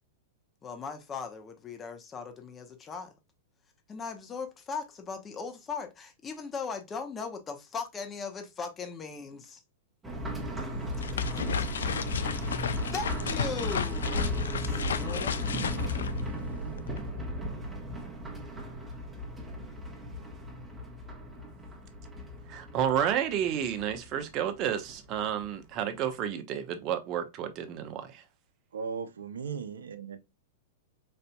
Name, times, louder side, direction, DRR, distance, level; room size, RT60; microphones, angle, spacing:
voice 1, 0.6-3.1 3.9-9.6 10.6-11.5 12.9-14.2 14.6-15.7, left 5 dB, 25° left, 0.8 m, -39 dB
sound 1, 10.0-25.5 25.8-25.9 26.3-26.4, left 1 dB, 10° right, 1.1 m, -36 dB
sound 2, 10.7-17.0, left 5 dB, 80° left, 0.3 m, -34 dB
voice 2, 22.5-28.2, right 9 dB, 40° right, 0.7 m, -31 dB
voice 3, 28.7-30.2, right 6 dB, 80° right, 0.5 m, -37 dB
4.3 x 2.6 x 2.2 m
hypercardioid pair, 110°, 0 cm